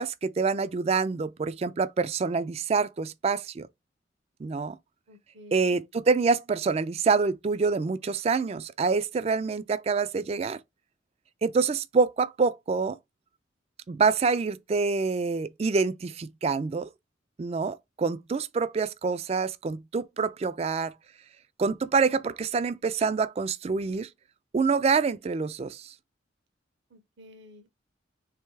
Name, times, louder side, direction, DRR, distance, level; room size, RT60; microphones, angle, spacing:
voice 1, 0.0-3.7 4.4-4.8 5.5-10.6 11.4-13.0 13.9-16.9 17.4-20.9 21.6-24.1 24.5-25.9, right 4 dB, 35° right, 0.3 m, -26 dB
voice 2, 5.1-5.8 26.9-27.7, left 1 dB, 70° right, 0.7 m, -51 dB
3.4 x 3.1 x 4.6 m
head